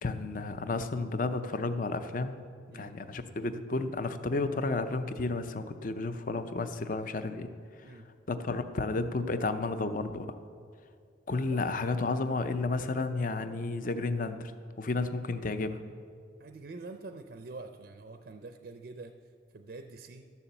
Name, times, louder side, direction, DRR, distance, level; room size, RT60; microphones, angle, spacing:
voice 1, 0.0-2.4 2.7-7.5 8.3-10.3 11.3-14.5 14.8-15.8, left 3 dB, 45° left, 11 dB, 0.5 m, -32 dB
voice 2, 2.7-3.0 7.8-8.1 11.5-11.6 16.4-19.2 19.5-20.3, right 3 dB, 55° right, 7 dB, 0.5 m, -46 dB
12.0 x 7.0 x 7.0 m, 2.2 s
head